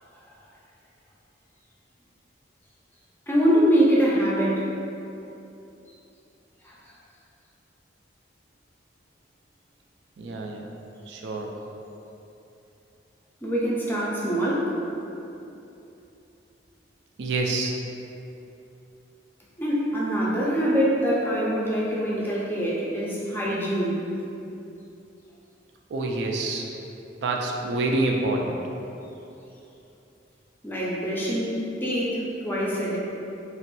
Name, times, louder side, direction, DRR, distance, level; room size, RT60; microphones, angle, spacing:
voice 1, 3.3-4.7 6.6-6.7 13.4-14.7 19.6-24.0 30.6-33.0, equal, 10° left, -5 dB, 0.4 m, -24 dB
voice 2, 10.2-10.7 11.1-11.5 17.2-17.7 25.9-26.7 27.2-28.6, right 2 dB, 65° right, 0 dB, 0.3 m, -27 dB
3.0 x 2.9 x 3.0 m, 2.9 s
head